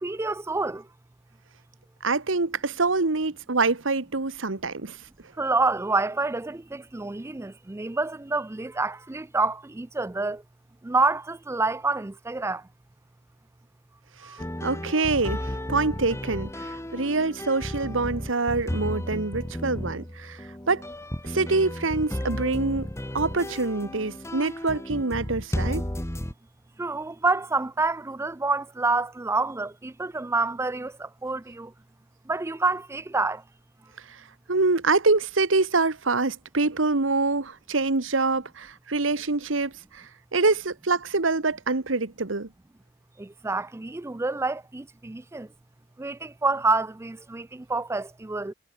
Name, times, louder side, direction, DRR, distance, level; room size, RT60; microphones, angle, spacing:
voice 1, 0.0-0.8 5.4-10.4 10.8-12.6 14.2-14.4 26.8-31.7 32.3-33.4 43.2-45.5 46.0-48.5, right 3 dB, 15° right, 0.4 m, -28 dB
voice 2, 2.0-5.0 14.6-20.8 21.2-22.9 23.1-25.8 34.1-34.2 34.5-42.5, right 3 dB, 70° right, 1.4 m, -25 dB
sound 1, 14.4-26.3, left 1 dB, 15° left, 1.7 m, -33 dB
head